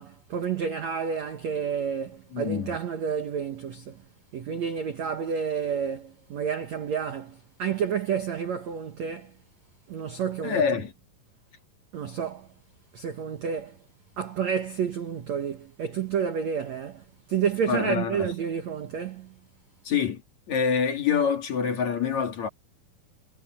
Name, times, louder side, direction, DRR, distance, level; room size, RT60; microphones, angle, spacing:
voice 1, 0.0-4.0 4.3-9.3 9.9-10.7 11.9-12.5 12.9-13.8 14.2-19.3, right 7 dB, 85° right, 1.5 m, -30 dB
voice 2, 2.3-2.7 10.4-10.9 17.7-18.3 19.9-20.2 20.5-22.5, left 6 dB, 45° left, 3.5 m, -26 dB
omnidirectional pair, 5.3 m